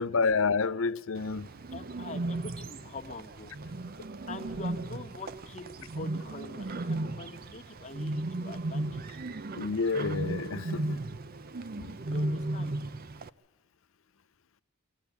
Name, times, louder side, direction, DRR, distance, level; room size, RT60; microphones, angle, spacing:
voice 1, 0.0-1.5 9.5-10.8 11.8-11.9, left 4 dB, 75° left, 0.7 m, -29 dB
Bird, 1.1-13.3, right 2 dB, 45° right, 0.6 m, -36 dB
voice 2, 1.7-3.5 4.3-9.0 12.1-12.7, left 3 dB, 35° left, 1.6 m, -44 dB
25.5 x 14.0 x 8.2 m
head